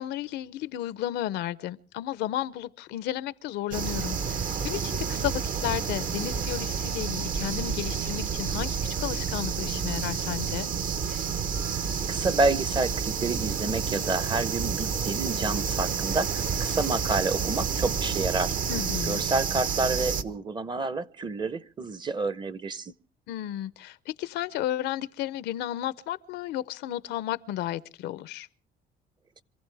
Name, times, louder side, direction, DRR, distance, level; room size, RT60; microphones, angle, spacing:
voice 1, 0.0-10.7 18.7-19.2 23.3-28.5, left 13 dB, 80° left, 0.7 m, -33 dB
sound 1, 3.7-20.2, right 6 dB, 55° right, 1.2 m, -29 dB
voice 2, 12.1-18.5 19.1-22.9, right 3 dB, 25° right, 0.8 m, -29 dB
26.5 x 15.5 x 3.4 m
cardioid pair, 110°, 17 cm